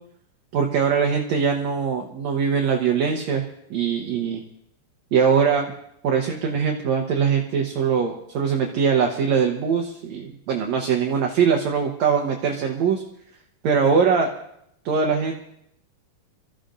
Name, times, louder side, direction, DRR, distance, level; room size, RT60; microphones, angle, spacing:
voice 1, 0.5-3.4 3.7-4.4 5.1-5.7 6.0-13.0 13.6-14.3 14.9-15.4, right 6 dB, 65° right, 2 dB, 1.9 m, -22 dB
27.0 x 14.0 x 2.6 m, 0.75 s
omnidirectional pair, 4.0 m